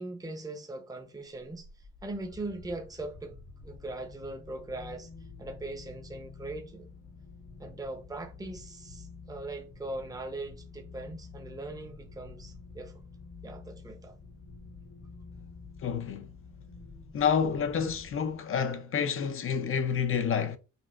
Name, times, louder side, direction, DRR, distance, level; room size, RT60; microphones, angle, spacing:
voice 1, 0.0-1.7 2.0-5.1 5.4-6.9 7.6-12.9 13.4-14.1, right 2 dB, 10° right, 0.8 m, -40 dB
sound 1, 1.3-18.6, left 4 dB, 80° left, 1.0 m, -49 dB
voice 2, 15.8-16.3 17.1-20.6, left 7 dB, 45° left, 0.5 m, -29 dB
5.1 x 2.4 x 2.4 m
cardioid pair, 90°, 30 cm